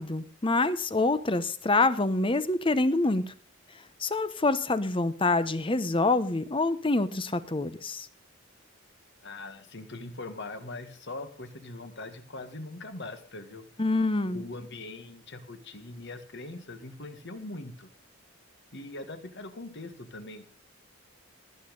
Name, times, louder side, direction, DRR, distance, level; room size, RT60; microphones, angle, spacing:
voice 1, 0.0-3.3 4.0-8.1 13.8-14.4, left 2 dB, 25° left, 14 dB, 0.8 m, -26 dB
voice 2, 9.2-13.7 14.3-17.9 18.7-20.5, left 2 dB, 55° left, 9 dB, 1.9 m, -41 dB
18.5 x 8.5 x 5.3 m, 0.40 s
head